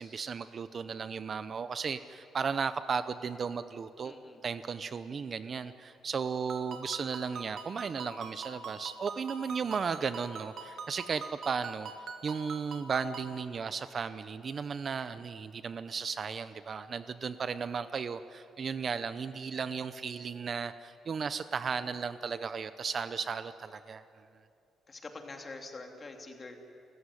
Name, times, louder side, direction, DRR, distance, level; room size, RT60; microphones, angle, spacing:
voice 1, 0.0-4.1 4.4-11.9 12.2-24.0, right 6 dB, 40° right, 12 dB, 0.6 m, -35 dB
voice 2, 4.0-4.4 24.9-26.6, left 3 dB, 25° left, 3 dB, 2.7 m, -45 dB
Ringtone, 6.5-13.4, right 5 dB, 55° right, 2.1 m, -44 dB
30.0 x 14.5 x 9.9 m, 2.7 s
cardioid pair, 140°, 0 cm